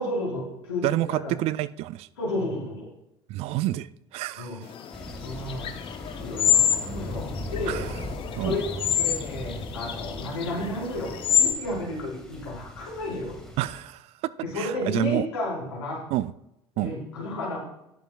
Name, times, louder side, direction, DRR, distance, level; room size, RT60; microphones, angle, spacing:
voice 1, 0.0-1.3 2.2-2.9 4.4-4.6 5.2-5.7 6.2-7.8 8.4-8.7 9.0-13.4 14.4-16.0 16.7-17.6, left 1 dB, 75° left, 4.5 m, -32 dB
voice 2, 0.8-2.1 3.3-4.7 7.7-7.9 8.4-8.6 13.6-15.3 16.1-16.3 16.8-16.9, right 15 dB, 50° right, 0.4 m, -29 dB
sound 1, 4.7-11.5, left 9 dB, 40° left, 1.0 m, -27 dB
Thunder, 4.9-13.8, equal, 5° left, 1.9 m, -39 dB
19.5 x 7.2 x 2.4 m
figure-of-eight pair, 60°, 14 cm